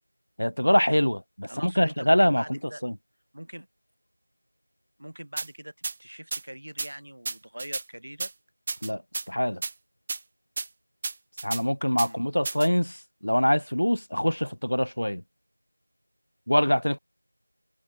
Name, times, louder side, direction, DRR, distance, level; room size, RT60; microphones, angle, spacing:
voice 1, 0.4-2.9 8.8-9.0 9.3-9.6 11.4-15.2 16.5-17.0, equal, 70° left, 4.9 m, -24 dB
voice 2, 1.5-2.9 3.3-3.7 5.0-5.7 6.0-8.3 11.9-12.2, right 1 dB, 40° right, 6.0 m, -42 dB
sound 1, 5.4-5.5 5.8-5.9 6.3-6.4 6.8-6.9 7.2-7.8 8.2-8.3 8.7-9.3 9.6-9.7 10.1-10.2 10.6-10.7 11.0-11.6 12.0-12.1 12.4-12.7, right 3 dB, 5° right, 1.7 m, -32 dB
figure-of-eight pair, 180°, 0 cm